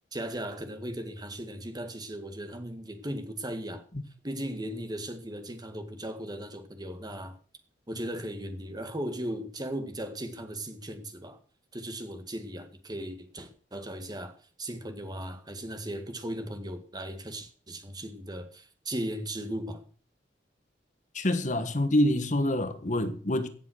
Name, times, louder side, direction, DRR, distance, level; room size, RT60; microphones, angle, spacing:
voice 1, 0.1-3.8 4.2-7.3 7.9-11.4 11.7-19.8, right 1 dB, 25° right, 1.8 m, -37 dB
voice 2, 21.1-23.5, left 1 dB, 45° left, 1.4 m, -26 dB
16.0 x 7.4 x 6.4 m
head